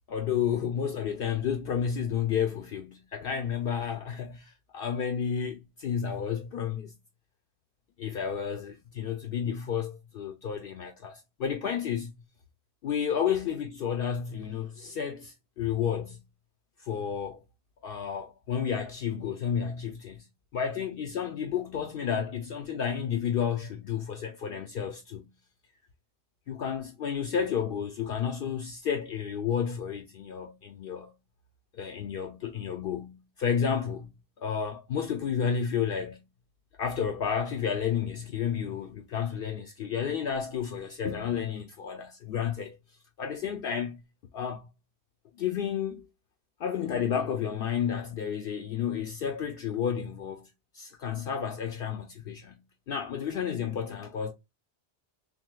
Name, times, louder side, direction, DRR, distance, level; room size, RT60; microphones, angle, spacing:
voice 1, 0.1-6.9 8.0-12.1 12.8-16.2 16.8-17.4 17.8-20.3 20.5-25.3 26.5-31.1 31.7-34.1 34.4-36.2 36.7-42.8 43.2-44.0 44.3-44.7 45.4-46.1 46.6-54.3, left 7 dB, 65° left, 0.7 m, -31 dB
5.9 x 2.1 x 2.2 m
omnidirectional pair, 1.1 m